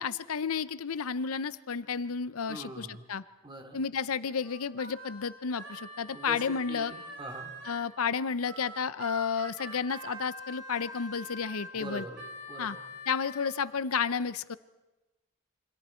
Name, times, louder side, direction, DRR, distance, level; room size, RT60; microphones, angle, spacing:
voice 1, 0.0-3.2 3.7-6.9 7.6-12.0 12.6-12.8 13.1-14.6, left 6 dB, 80° left, 15 dB, 0.7 m, -32 dB
voice 2, 2.5-3.0 3.4-3.8 6.1-6.4 6.7-7.5 11.7-12.8, right 1 dB, 20° right, 4 dB, 2.6 m, -43 dB
Harmonica, 4.4-7.9 8.4-13.5, equal, 55° right, 3.3 m, -44 dB
28.0 x 25.0 x 4.4 m, 1.1 s
head